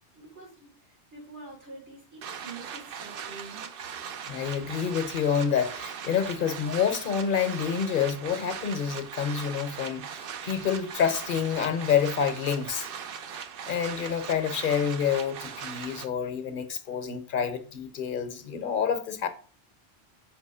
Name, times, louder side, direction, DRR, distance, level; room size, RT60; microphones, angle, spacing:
voice 1, 0.1-3.8, right 3 dB, 85° right, 3.3 m, -46 dB
sound 1, 2.2-16.1, right 7 dB, 60° right, 0.7 m, -39 dB
voice 2, 4.3-10.1 10.4-12.9 13.7-19.3, left 7 dB, 55° left, 0.8 m, -28 dB
6.0 x 3.0 x 5.4 m
omnidirectional pair, 1.2 m